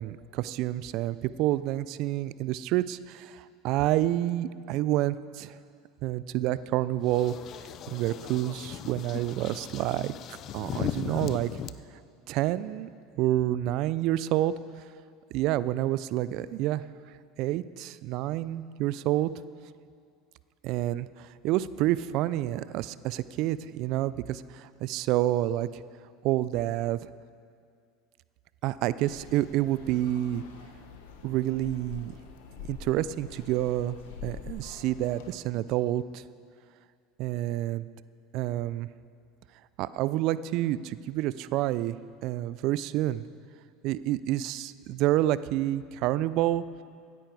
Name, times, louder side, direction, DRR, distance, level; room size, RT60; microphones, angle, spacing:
voice 1, 0.0-5.6 6.0-7.3 7.9-10.1 10.5-11.5 12.3-12.9 13.2-14.5 15.3-16.8 17.4-19.3 20.6-25.7 26.2-27.0 28.6-30.4 31.2-32.1 32.6-34.0 34.2-36.2 37.2-37.9 38.3-38.9 39.8-42.0 42.2-43.2 43.8-46.6, right 14 dB, 60° right, 16 dB, 0.4 m, -28 dB
sound 1, 7.1-11.7, left 10 dB, 50° left, 0.5 m, -37 dB
sound 2, 29.0-35.4, left 6 dB, 80° left, 1.2 m, -46 dB
15.5 x 9.7 x 4.7 m, 2.2 s
hypercardioid pair, 85°, 0 cm